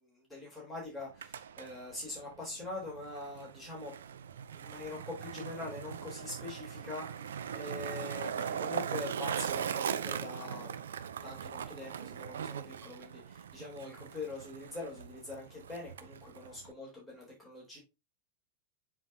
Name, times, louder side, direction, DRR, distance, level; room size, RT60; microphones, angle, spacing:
voice 1, 0.0-3.9 4.5-10.8 11.2-17.8, left 2 dB, 5° left, 3.8 m, -44 dB
Skateboard, 1.0-16.7, right 8 dB, 65° right, 0.5 m, -40 dB
7.7 x 4.7 x 2.8 m
figure-of-eight pair, 90°, 0 cm